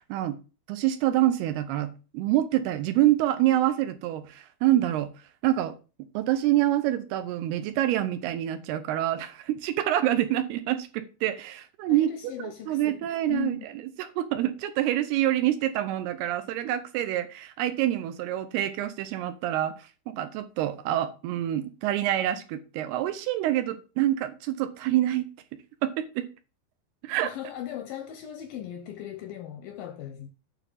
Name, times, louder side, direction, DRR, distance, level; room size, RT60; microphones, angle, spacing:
voice 1, 0.7-5.1 5.4-5.7 6.1-12.1 12.4-13.7 14.0-25.3 25.8-26.3 27.0-27.3, right 13 dB, 80° right, 2.6 m, -26 dB
voice 2, 11.9-13.7 27.2-30.3, left 11 dB, 80° left, 2.1 m, -38 dB
9.1 x 4.0 x 7.2 m
omnidirectional pair, 4.9 m